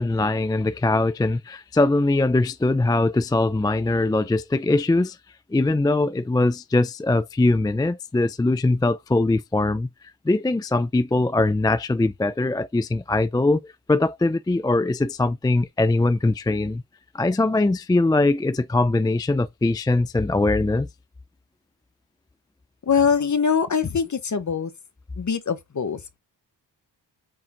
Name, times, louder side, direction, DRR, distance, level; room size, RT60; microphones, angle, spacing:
voice 1, 0.0-5.2 5.5-9.9 10.2-16.8 17.1-20.9, left 2 dB, 10° left, 0.4 m, -21 dB
voice 2, 22.9-24.7 25.2-26.2, left 6 dB, 40° left, 1.1 m, -23 dB
8.6 x 3.7 x 3.0 m
cardioid pair, 75°, 44 cm